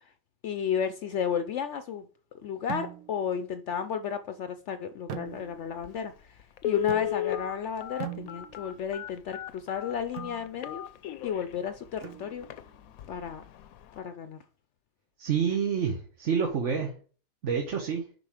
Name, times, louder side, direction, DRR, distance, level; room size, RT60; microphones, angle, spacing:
voice 1, 0.4-2.1 2.4-6.1 6.6-10.8 11.2-12.4 13.1-13.4 14.0-14.4, left 7 dB, 65° left, 9 dB, 0.8 m, -32 dB
sound 1, 2.7-3.3 5.1-5.8 6.9-7.5 8.0-8.8 10.2-10.5 12.0-12.6, right 10 dB, 80° right, 1.2 m, -41 dB
Telephone, 5.8-5.9 6.6-11.4 12.0-12.1 12.4-12.6 13.0-13.3 13.6-13.7, left 12 dB, 85° left, 1.1 m, -34 dB
voice 2, 15.2-16.9 17.4-18.0, right 6 dB, 60° right, 2 dB, 1.4 m, -28 dB
6.8 x 5.4 x 4.9 m, 0.41 s
omnidirectional pair, 1.4 m